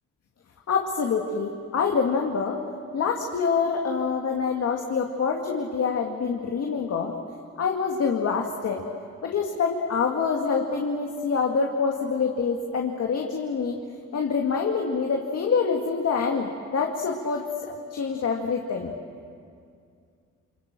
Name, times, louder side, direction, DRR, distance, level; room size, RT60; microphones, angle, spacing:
voice 1, 0.7-2.6 2.9-7.1 7.6-8.8 9.2-13.8 14.1-18.9, left 5 dB, 55° left, 1 dB, 2.3 m, -26 dB
28.5 x 24.0 x 7.6 m, 2.3 s
cardioid pair, 90°, 30 cm